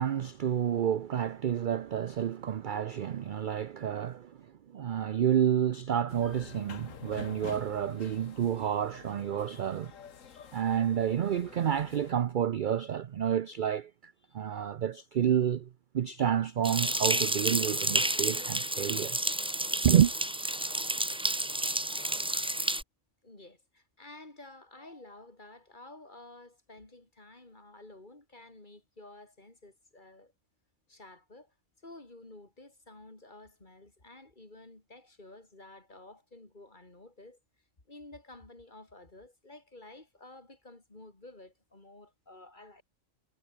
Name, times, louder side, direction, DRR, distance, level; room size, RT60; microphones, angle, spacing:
voice 1, 0.0-4.5 4.7-9.9 10.5-15.7 15.9-19.3 19.8-20.1, right 9 dB, 55° right, 0.6 m, -29 dB
sound 1, 6.1-12.1, left 7 dB, 90° left, 1.7 m, -48 dB
sound 2, 16.6-22.8, right 1 dB, 5° right, 0.4 m, -30 dB
voice 2, 23.2-30.3 30.9-31.5 31.8-37.4 37.9-42.8, left 2 dB, 35° left, 3.5 m, -52 dB
omnidirectional pair, 1.3 m